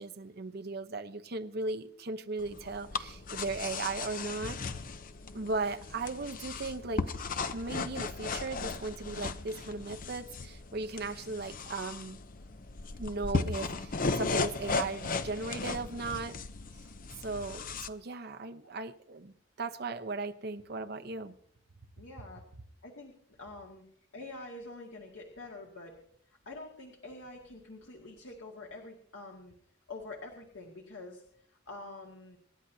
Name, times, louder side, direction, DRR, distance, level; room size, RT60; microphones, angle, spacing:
voice 1, 0.0-4.6 5.3-7.0 7.5-12.2 13.0-16.4 17.2-21.3, right 3 dB, 55° right, 0.8 m, -37 dB
sound 1, 2.4-17.9, left 4 dB, 45° left, 0.6 m, -36 dB
voice 2, 22.0-22.4 22.8-23.8 24.1-25.9 26.3-29.5 29.9-31.2 31.7-32.4, left 2 dB, 90° left, 2.0 m, -46 dB
26.5 x 11.5 x 2.8 m
head